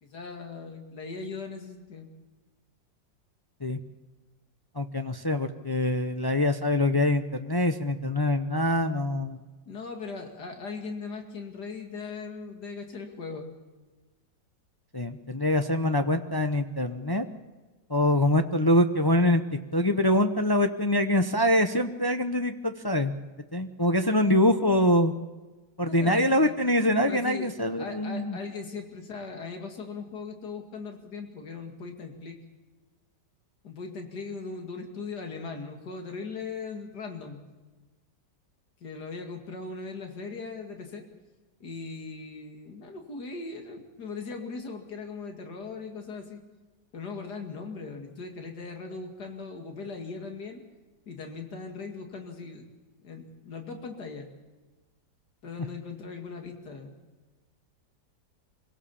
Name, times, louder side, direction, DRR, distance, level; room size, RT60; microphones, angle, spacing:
voice 1, 0.0-2.1 9.7-13.5 25.9-26.5 27.0-32.4 33.6-37.4 38.8-41.1 41.6-46.4 46.9-50.6 51.1-52.7 53.0-54.3 55.4-56.9, left 4 dB, 65° left, 4 dB, 2.8 m, -39 dB
voice 2, 4.8-9.4 14.9-17.3 17.9-19.4 19.7-23.1 23.5-25.1 25.8-28.4, left 1 dB, 30° left, 6 dB, 0.4 m, -24 dB
25.0 x 17.5 x 7.1 m, 1.2 s
omnidirectional pair, 1.9 m